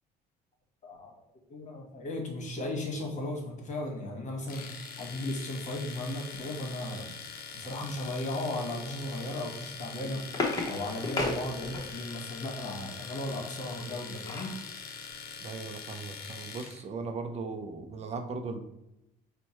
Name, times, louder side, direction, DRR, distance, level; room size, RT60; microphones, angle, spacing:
voice 1, 0.8-1.2 1.5-7.1 7.5-10.2 10.7-14.5, left 1 dB, 45° left, 1 dB, 1.3 m, -36 dB
Domestic sounds home sounds, 4.5-16.8, left 6 dB, 65° left, 0.7 m, -43 dB
sound 1, 9.7-12.2 13.7-14.6 15.1-15.2 15.5-15.7, left 2 dB, 25° left, 1.0 m, -34 dB
voice 2, 15.4-18.6, right 4 dB, 40° right, 5 dB, 0.5 m, -38 dB
4.5 x 2.2 x 4.2 m, 0.89 s
cardioid pair, 110°, 17 cm